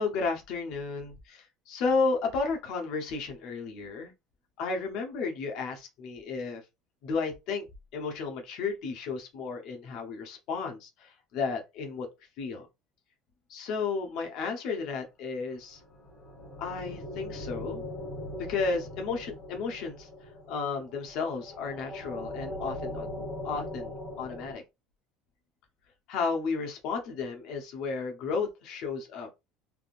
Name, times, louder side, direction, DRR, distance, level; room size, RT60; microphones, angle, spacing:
voice 1, 0.0-4.1 4.6-6.6 7.0-7.7 7.9-12.1 12.4-12.7 13.5-15.8 16.6-17.8 18.5-23.1 23.4-24.6 26.1-29.3, left 4 dB, 55° left, 0.8 m, -33 dB
sound 1, 15.7-24.5, left 1 dB, 25° left, 1.7 m, -40 dB
3.5 x 2.5 x 2.4 m
cardioid pair, 165°, 0 cm